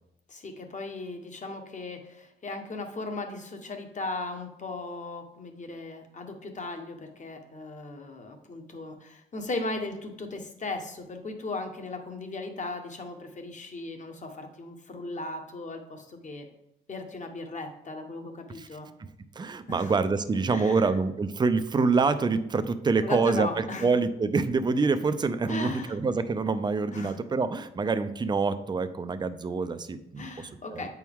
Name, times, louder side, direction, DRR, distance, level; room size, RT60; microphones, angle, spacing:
voice 1, 0.3-16.5 16.9-18.9 19.7-19.9 20.5-20.8 23.0-23.9 25.5-26.0 26.9-27.1 30.2-30.9, left 2 dB, 40° left, 5 dB, 1.3 m, -37 dB
voice 2, 19.0-30.9, right 4 dB, 20° right, 11 dB, 0.5 m, -26 dB
8.1 x 4.6 x 3.6 m, 0.83 s
cardioid pair, 90°, 20 cm